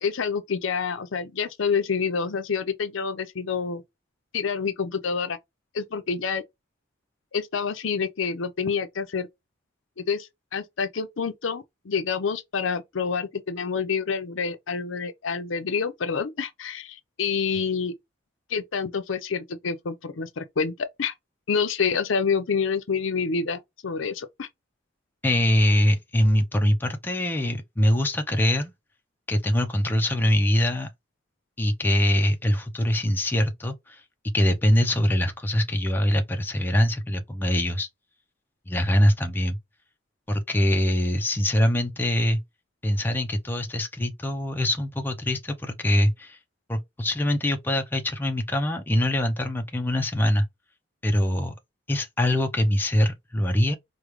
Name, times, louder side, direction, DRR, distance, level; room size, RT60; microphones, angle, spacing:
voice 1, 0.0-3.8 4.3-5.4 5.7-6.4 7.3-9.3 10.0-17.9 18.5-21.1 21.5-24.5, left 5 dB, 70° left, 0.6 m, -28 dB
voice 2, 25.2-28.7 29.3-30.9 31.6-34.0 34.3-37.9 38.7-39.6 40.3-42.4 42.8-46.4 46.7-50.5 51.0-51.5 51.9-53.7, left 1 dB, 10° left, 0.5 m, -23 dB
4.9 x 2.2 x 3.0 m
head